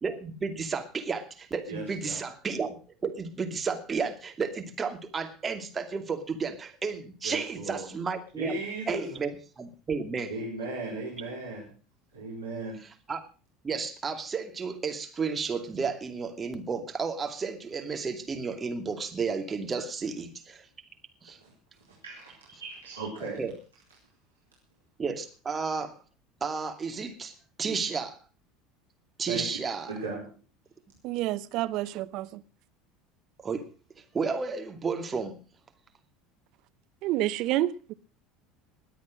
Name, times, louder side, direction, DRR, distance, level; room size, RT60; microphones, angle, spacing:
voice 1, 0.0-2.8 3.0-8.6 8.9-10.3 13.1-13.2 13.6-20.7 21.2-21.4 23.4-23.5 25.0-26.0 26.4-27.3 27.6-28.2 29.2-29.9 33.4-33.7 34.0-35.4, right 5 dB, 25° right, 2.6 m, -32 dB
voice 2, 1.7-2.2 7.2-7.9 8.4-9.2 10.3-11.7 12.1-12.8 21.4-21.5 22.0-23.4 29.3-29.5 29.9-30.2, right 2 dB, 90° right, 4.4 m, -36 dB
voice 3, 31.0-32.4 37.0-37.9, right 15 dB, 55° right, 0.8 m, -29 dB
20.5 x 8.2 x 6.4 m
hypercardioid pair, 75°, 0 cm